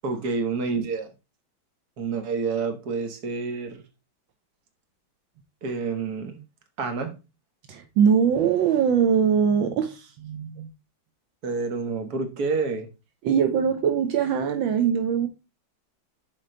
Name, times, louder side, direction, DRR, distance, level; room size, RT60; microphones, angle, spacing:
voice 1, 0.0-1.1 2.0-3.8 5.6-6.4 6.8-7.1 11.4-12.9, right 4 dB, 55° right, 1.8 m, -28 dB
voice 2, 7.7-10.7 13.2-15.3, right 7 dB, 80° right, 1.6 m, -22 dB
7.8 x 4.9 x 3.8 m
omnidirectional pair, 2.1 m